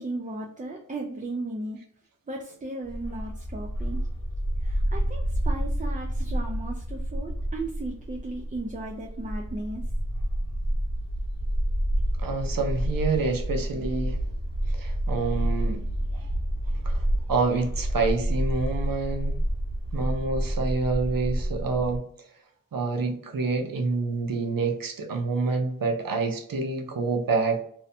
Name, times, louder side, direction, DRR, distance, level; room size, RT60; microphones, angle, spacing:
voice 1, 0.0-1.8 2.3-4.0 4.6-9.9, right 2 dB, 25° right, 0 dB, 0.4 m, -36 dB
Bark, 2.8-22.0, right 1 dB, 80° left, 0.7 m, -29 dB
voice 2, 12.2-14.4 14.6-16.3 16.7-19.4 19.9-22.1 22.7-27.6, right 3 dB, 90° right, 4 dB, 0.5 m, -28 dB
2.6 x 2.1 x 2.6 m, 0.65 s
wide cardioid pair, 45°, 33 cm